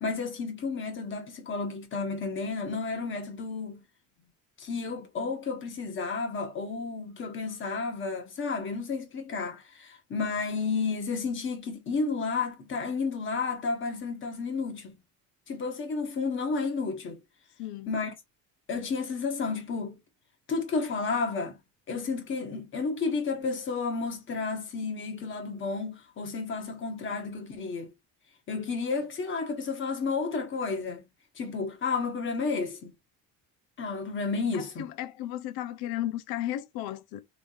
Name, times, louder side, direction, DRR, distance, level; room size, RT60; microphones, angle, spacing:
voice 1, 0.0-3.8 4.6-15.0 15.5-17.2 17.9-18.1 18.7-20.0 20.5-21.6 21.9-27.9 28.5-31.0 31.4-32.9 33.8-34.8, left 4 dB, 30° left, 1.3 m, -32 dB
voice 2, 17.6-17.9 34.5-37.2, left 13 dB, 70° left, 0.7 m, -34 dB
3.5 x 3.4 x 2.6 m
cardioid pair, 170°, 37 cm